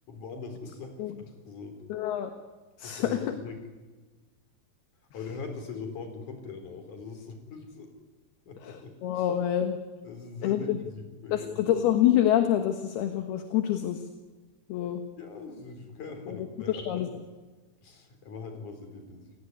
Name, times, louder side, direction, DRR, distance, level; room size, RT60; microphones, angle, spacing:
voice 1, 0.1-1.8 2.8-3.6 5.1-7.9 8.5-9.3 10.0-11.7 15.2-16.8 17.8-19.3, left 4 dB, 45° left, 6 dB, 5.3 m, -41 dB
voice 2, 1.9-2.3 2.8-3.2 8.6-9.8 10.4-10.8 11.3-14.0 14.7-15.0 16.3-16.4 16.7-17.1, left 11 dB, 70° left, 7 dB, 3.2 m, -26 dB
30.0 x 18.0 x 9.8 m, 1.3 s
omnidirectional pair, 5.1 m